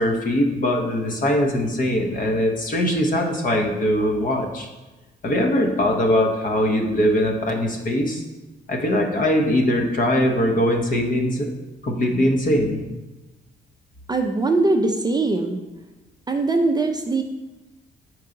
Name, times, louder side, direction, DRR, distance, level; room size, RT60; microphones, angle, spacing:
voice 1, 0.0-4.7 5.2-8.2 8.7-11.5 11.8-12.9, left 1 dB, 45° left, 2 dB, 1.0 m, -21 dB
voice 2, 14.1-15.6 16.3-17.2, right 3 dB, 20° right, 4 dB, 0.5 m, -21 dB
5.6 x 4.6 x 3.8 m, 1.1 s
cardioid pair, 90°, 20 cm